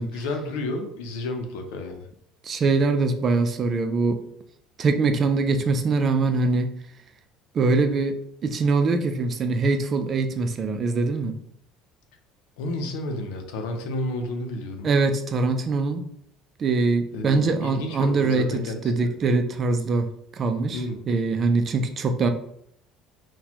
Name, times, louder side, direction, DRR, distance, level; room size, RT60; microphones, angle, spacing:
voice 1, 0.0-2.1 12.6-14.9 17.1-19.2 20.7-21.0, left 2 dB, 85° left, 4 dB, 0.6 m, -31 dB
voice 2, 2.4-4.2 4.8-6.7 7.5-11.4 14.8-16.0 16.6-20.1 20.4-22.3, right 3 dB, 40° right, 7 dB, 0.5 m, -23 dB
4.0 x 2.3 x 2.9 m, 0.69 s
supercardioid pair, 105°, 0 cm